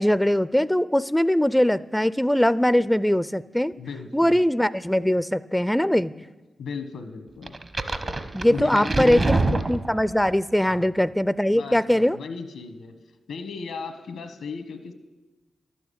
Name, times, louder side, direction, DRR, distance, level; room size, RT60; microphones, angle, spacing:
voice 1, 0.0-3.7 4.1-6.1 8.3-9.4 9.7-12.2, equal, 5° left, 17 dB, 0.4 m, -21 dB
voice 2, 3.8-4.4 6.1-6.2 6.6-7.5 8.5-9.7 10.7-10.9 11.5-12.9 13.3-14.9, left 5 dB, 90° left, 9 dB, 1.1 m, -35 dB
sound 1, 7.5-10.3, right 2 dB, 45° right, 1.0 m, -26 dB
12.0 x 7.0 x 8.5 m, 1.2 s
supercardioid pair, 45°, 0 cm